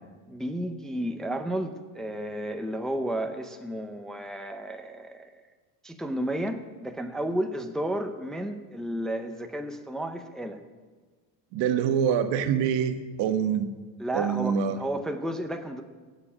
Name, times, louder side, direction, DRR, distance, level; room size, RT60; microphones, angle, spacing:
voice 1, 0.3-5.3 5.8-10.6 14.0-15.8, right 1 dB, ahead, 5 dB, 0.5 m, -32 dB
voice 2, 11.5-13.7 14.1-14.8, right 8 dB, 80° right, 8 dB, 1.3 m, -25 dB
16.5 x 7.2 x 8.5 m, 1.4 s
cardioid pair, 170°, 43 cm